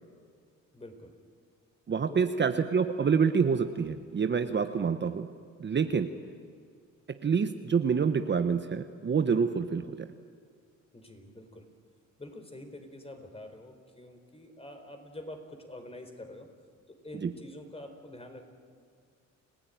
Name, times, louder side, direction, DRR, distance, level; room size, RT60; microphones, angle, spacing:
voice 1, 0.7-1.2 2.1-2.4 4.7-4.9 5.8-6.0 10.9-11.7 12.2-16.5 16.9-18.5, left 1 dB, 20° left, 6 dB, 4.2 m, -46 dB
voice 2, 1.9-5.3 5.6-6.1 7.2-10.1 17.2-17.3, right 6 dB, 35° right, 8 dB, 1.1 m, -27 dB
29.5 x 16.0 x 9.3 m, 2.1 s
cardioid pair, 90°, 30 cm